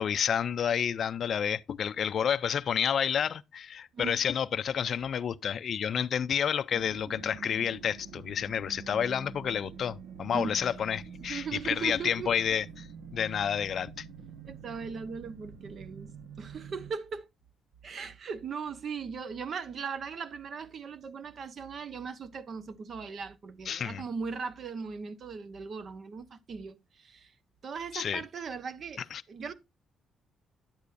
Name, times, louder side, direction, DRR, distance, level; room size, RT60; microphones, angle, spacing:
voice 1, 0.0-14.1 23.7-24.0 27.9-28.2 29.1-29.2, left 8 dB, 55° left, 0.4 m, -30 dB
sound 1, 6.7-16.9, right 6 dB, 80° right, 1.0 m, -46 dB
voice 2, 10.3-10.7 11.2-12.3 14.5-16.1 16.4-17.3 17.8-27.3 27.6-29.0 29.3-29.5, right 5 dB, 55° right, 0.9 m, -38 dB
10.5 x 8.2 x 2.5 m
cardioid pair, 90°, 0 cm